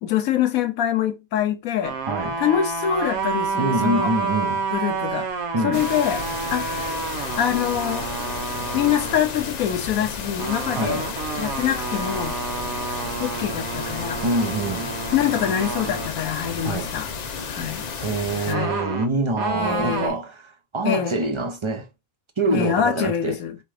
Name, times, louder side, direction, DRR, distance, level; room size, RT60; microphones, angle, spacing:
voice 1, 0.0-2.0 2.4-4.1 4.7-5.3 5.6-6.2 6.5-6.8 7.2-8.1 8.7-11.1 11.4-12.3 13.2-14.2 15.1-17.1 17.4-17.8 18.4-18.8 19.5-20.2 20.8-21.2 22.5-23.6, left 9 dB, 85° left, 1.1 m, -24 dB
sound 1, 1.8-9.2 10.3-16.1 18.5-20.1, right 4 dB, 90° right, 1.3 m, -29 dB
voice 2, 2.1-2.4 3.6-4.6 5.5-5.8 10.8-11.0 14.2-14.9 16.6-16.9 18.0-21.9 22.4-23.4, right 2 dB, 35° right, 0.4 m, -25 dB
sound 2, 5.7-18.5, left 6 dB, 55° left, 0.4 m, -32 dB
3.5 x 2.9 x 4.8 m
omnidirectional pair, 1.5 m